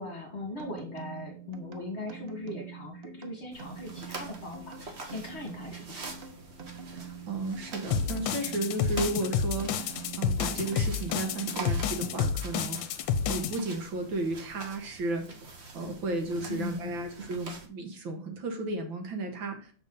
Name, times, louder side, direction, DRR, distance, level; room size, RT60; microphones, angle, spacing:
voice 1, 0.0-6.1 16.5-16.9, left 2 dB, 30° left, 1 dB, 2.1 m, -39 dB
sound 1, 0.6-12.8, right 6 dB, 85° right, 0.5 m, -46 dB
sound 2, 3.5-17.7, right 3 dB, 35° right, 1.2 m, -45 dB
voice 2, 6.8-15.3 15.7-19.7, right 2 dB, 65° right, 4 dB, 2.2 m, -34 dB
sound 3, 7.9-13.6, left 7 dB, 75° left, 1.4 m, -29 dB
7.1 x 6.0 x 3.9 m, 0.41 s
omnidirectional pair, 2.3 m